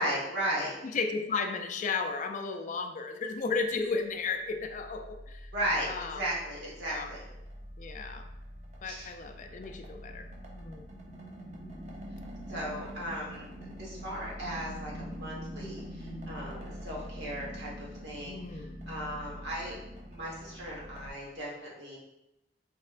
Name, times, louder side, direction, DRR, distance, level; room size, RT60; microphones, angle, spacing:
voice 1, 0.0-0.7 5.5-7.2 8.8-9.1 12.5-13.4 13.8-19.8 20.1-22.0, equal, 70° right, -4 dB, 1.4 m, -36 dB
voice 2, 0.8-5.5 5.9-6.2 6.9-7.2 7.8-8.3 8.8-10.3 10.5-10.9 18.2-18.8, left 4 dB, 45° left, 5 dB, 0.4 m, -34 dB
sound 1, 3.7-21.1, equal, 40° right, 0.8 m, -44 dB
4.2 x 4.1 x 2.5 m, 0.91 s
head